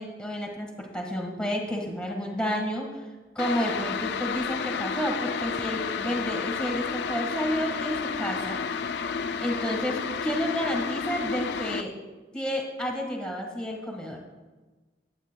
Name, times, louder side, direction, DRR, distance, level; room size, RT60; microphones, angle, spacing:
voice 1, 0.0-3.0 3.3-8.6 9.4-11.9 12.3-14.2, equal, 5° left, 1 dB, 1.5 m, -30 dB
sound 1, 3.4-11.8, left 5 dB, 70° left, 0.4 m, -31 dB
20.5 x 8.6 x 2.2 m, 1.3 s
head